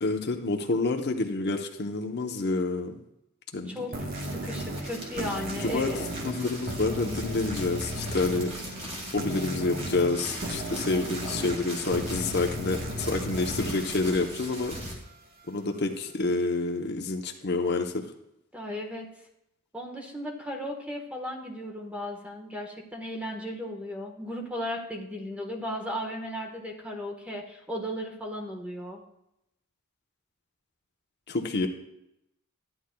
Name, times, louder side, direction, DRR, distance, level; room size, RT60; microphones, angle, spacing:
voice 1, 0.0-2.9 3.5-3.9 5.6-5.9 6.2-8.5 9.1-14.8 15.5-18.0 31.3-31.7, left 3 dB, 50° left, 4 dB, 0.8 m, -28 dB
voice 2, 3.7-6.1 18.5-19.1 19.7-29.0, equal, 5° right, 1 dB, 1.2 m, -36 dB
sound 1, 3.9-15.1, equal, 45° right, 1.2 m, -36 dB
sound 2, 4.1-14.9, equal, 30° right, 2.2 m, -41 dB
13.5 x 9.9 x 2.3 m, 0.83 s
head